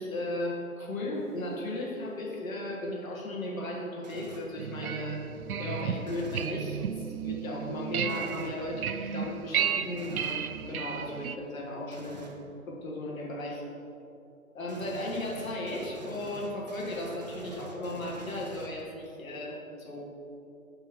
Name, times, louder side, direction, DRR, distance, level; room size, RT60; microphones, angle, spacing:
voice 1, 0.0-5.2 5.6-12.3 12.7-13.6 14.5-20.0, left 1 dB, 65° left, -3 dB, 1.8 m, -36 dB
sound 1, 1.1-3.8 7.2-12.4, left 2 dB, 35° left, 1.2 m, -51 dB
sound 2, 4.0-4.6 6.0-6.6 8.1-8.6 10.0-10.5 11.9-12.4 14.7-19.0, right 2 dB, 30° right, 0.5 m, -46 dB
sound 3, 4.6-11.4, right 8 dB, 75° right, 0.5 m, -33 dB
7.0 x 4.5 x 6.0 m, 2.7 s
hypercardioid pair, 155°, 44 cm